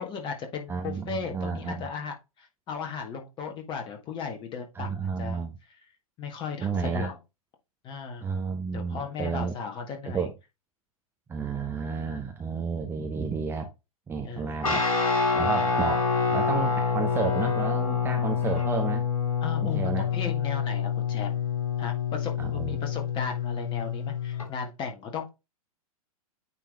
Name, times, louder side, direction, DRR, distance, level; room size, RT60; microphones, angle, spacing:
voice 1, 0.0-5.5 6.2-7.2 7.8-8.2 8.7-10.3 14.2-14.5 19.4-21.4 21.8-25.3, left 6 dB, 25° left, 1.7 m, -36 dB
voice 2, 0.7-1.9 4.7-5.6 6.6-7.1 8.2-9.5 10.0-10.3 11.3-13.7 14.1-14.8 15.3-19.1 19.6-20.1 22.4-22.8, right 5 dB, 10° right, 0.8 m, -31 dB
Guitar, 14.6-24.5, left 5 dB, 65° left, 2.9 m, -27 dB
9.2 x 3.6 x 3.5 m
figure-of-eight pair, 105°, 19 cm